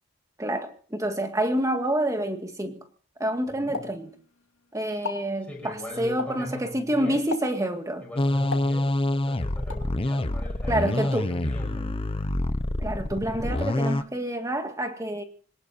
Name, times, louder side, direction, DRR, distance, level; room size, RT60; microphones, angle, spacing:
voice 1, 0.4-2.8 3.2-4.1 4.7-8.0 10.7-11.3 12.8-15.2, right 1 dB, 15° right, 1.9 m, -28 dB
voice 2, 3.5-3.8 5.5-7.3 8.0-11.9, left 1 dB, 5° left, 6.3 m, -40 dB
Explosion, 3.7-4.6 4.9-5.3 6.2-6.6 7.3-7.7 8.5-9.2 9.7-9.9, left 3 dB, 65° left, 2.6 m, -36 dB
sound 1, 8.2-14.0, left 1 dB, 25° left, 0.8 m, -26 dB
26.5 x 18.5 x 2.7 m
head